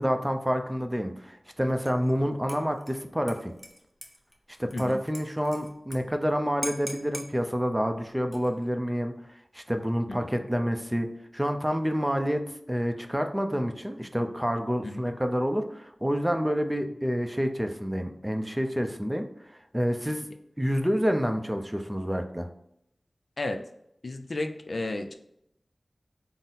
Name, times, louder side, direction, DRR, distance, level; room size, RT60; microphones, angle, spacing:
voice 1, 0.0-3.5 4.6-9.1 9.5-11.1 11.3-19.3 19.7-20.3 20.6-22.5, equal, 10° right, 5 dB, 0.4 m, -28 dB
Dishes pots and pans / Liquid, 1.8-2.2 2.5-6.0 6.2-6.3 6.6-7.3 8.2-8.7, equal, 15° left, 0.7 m, -41 dB
voice 2, 24.0-25.2, left 2 dB, 70° left, 6 dB, 0.4 m, -33 dB
3.9 x 2.0 x 3.9 m, 0.78 s
wide cardioid pair, 45°, 0 cm